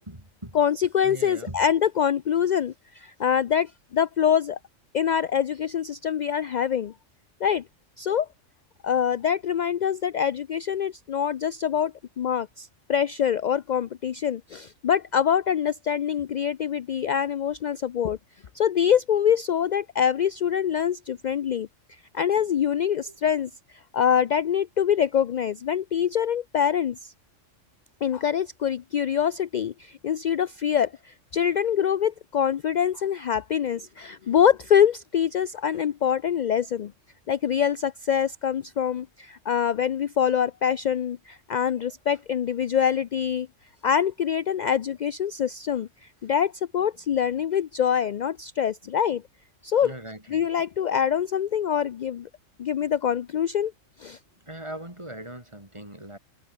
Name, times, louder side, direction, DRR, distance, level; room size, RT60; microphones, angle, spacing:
voice 1, 0.0-0.6 1.0-1.6 22.6-22.7 23.1-23.2 24.2-24.3 34.2-34.3 49.8-50.5 54.4-56.2, right 1 dB, 20° right, 4.7 m, -40 dB
voice 2, 0.5-4.6 4.9-6.9 7.4-7.6 8.0-8.3 8.8-18.2 18.5-27.1 28.0-36.9 37.3-43.5 43.8-49.2 49.6-49.9 50.3-52.3 52.6-53.7 54.0-54.2, left 8 dB, 60° left, 0.4 m, -25 dB
omnidirectional pair, 1.3 m